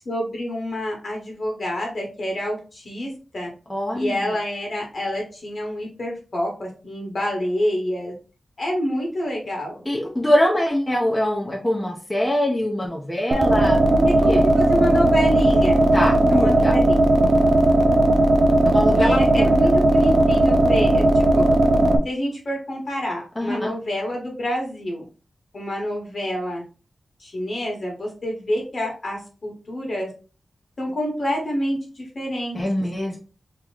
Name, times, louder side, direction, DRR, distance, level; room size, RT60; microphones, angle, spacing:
voice 1, 0.0-3.5 3.9-8.1 8.6-9.8 14.1-15.9 16.3-17.1 18.9-21.5 22.0-25.0 25.5-26.6 27.2-30.1 30.8-32.6, equal, 50° left, 0 dB, 1.4 m, -27 dB
voice 2, 3.7-4.2 9.9-14.4 15.9-16.7 18.6-19.5 23.4-23.7 32.5-33.2, left 1 dB, 10° left, -2 dB, 0.8 m, -23 dB
sound 1, 13.3-22.0, right 1 dB, 55° right, 0.5 m, -17 dB
3.0 x 3.0 x 3.8 m, 0.35 s
wide cardioid pair, 140°, 0 cm